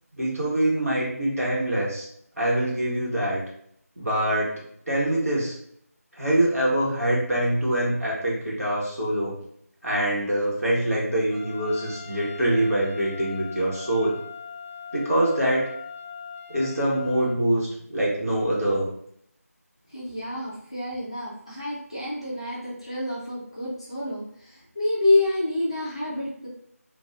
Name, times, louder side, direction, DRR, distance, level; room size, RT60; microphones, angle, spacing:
voice 1, 0.1-2.1 2.4-3.4 4.0-4.5 4.9-5.6 6.2-9.4 9.8-14.2 14.9-15.7 16.5-18.9, right 1 dB, 65° right, -5 dB, 1.1 m, -24 dB
Trumpet, 11.3-17.3, left 6 dB, 35° right, 1.2 m, -41 dB
voice 2, 19.9-26.5, left 2 dB, 20° left, -7 dB, 0.4 m, -27 dB
2.6 x 2.2 x 2.3 m, 0.68 s
figure-of-eight pair, 165°, 8 cm